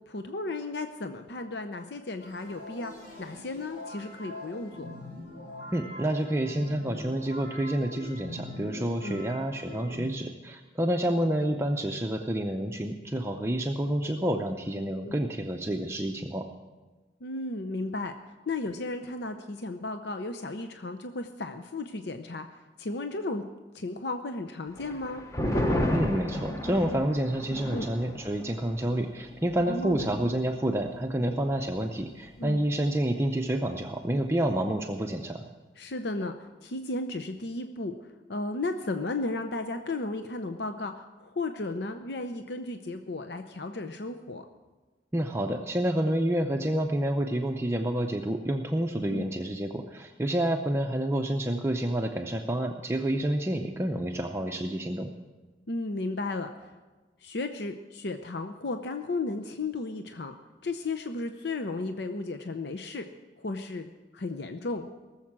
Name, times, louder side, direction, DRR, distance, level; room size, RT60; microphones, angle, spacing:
voice 1, 0.1-2.9 3.2-4.9 9.0-9.2 11.4-11.5 15.0-15.2 17.2-18.1 18.5-22.5 22.8-23.4 23.7-25.2 27.7-27.9 29.7-30.1 32.4-32.6 35.8-38.0 38.3-44.4 49.1-49.3 55.7-56.5 57.2-60.4 60.6-63.1 63.4-64.9, left 2 dB, 70° left, 7 dB, 0.7 m, -34 dB
sound 1, 2.2-10.1, left 1 dB, 85° left, 5.0 m, -43 dB
voice 2, 5.7-16.5 25.9-35.5 45.1-55.1, right 1 dB, 15° right, 3 dB, 0.6 m, -29 dB
sound 2, 24.8-31.7 32.0-32.1 32.5-33.0, left 1 dB, 15° left, 0.9 m, -33 dB
18.5 x 7.3 x 7.4 m, 1.2 s
head